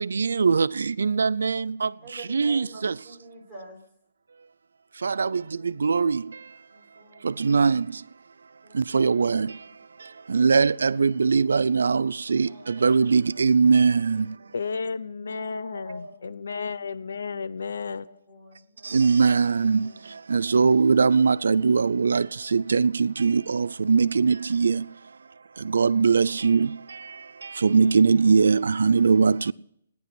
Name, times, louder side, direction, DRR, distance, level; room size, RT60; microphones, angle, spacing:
voice 1, 0.0-3.2 4.9-6.7 7.2-8.1 8.7-14.5 18.8-25.3 25.5-29.5, right 5 dB, 85° right, 0.5 m, -22 dB
voice 2, 2.0-3.8 5.2-5.7 6.7-7.5 8.6-9.0 12.4-12.9 15.2-16.6 18.3-19.1 19.8-19.9, right 1 dB, ahead, 4.4 m, -46 dB
voice 3, 14.5-18.1, left 5 dB, 75° left, 0.8 m, -32 dB
17.0 x 11.0 x 6.1 m
hypercardioid pair, 175°, 0 cm